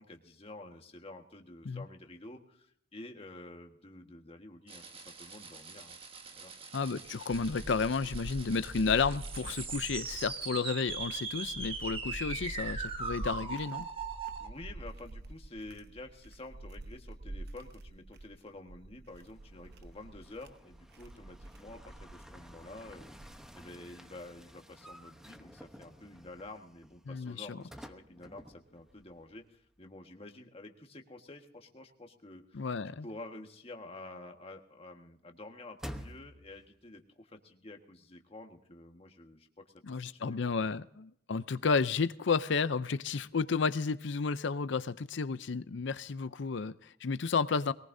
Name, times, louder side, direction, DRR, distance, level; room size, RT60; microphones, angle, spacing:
voice 1, 0.0-6.0 6.3-6.5 14.4-40.7, left 2 dB, 30° left, 4 dB, 1.5 m, -50 dB
sound 1, 4.7-14.5, right 4 dB, 30° right, 1.5 m, -41 dB
voice 2, 6.7-13.9 27.1-27.6 32.5-33.1 39.8-47.7, left 5 dB, 65° left, 15 dB, 0.5 m, -32 dB
sound 2, 6.8-23.7, right 1 dB, 55° right, 0.9 m, -46 dB
sound 3, 19.1-29.4 29.7-29.8 35.8-36.7, equal, 5° right, 0.9 m, -51 dB
22.5 x 19.0 x 2.7 m, 0.71 s
head